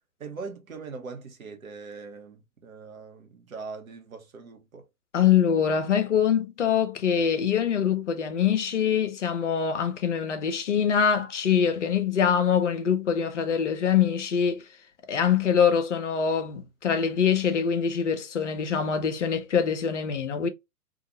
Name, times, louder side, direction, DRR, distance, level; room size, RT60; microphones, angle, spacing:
voice 1, 0.2-4.9, right 4 dB, 60° right, 1.0 m, -41 dB
voice 2, 5.1-14.6 15.1-20.5, left 7 dB, 50° left, 0.6 m, -24 dB
2.6 x 2.4 x 2.7 m
figure-of-eight pair, 120°, 46 cm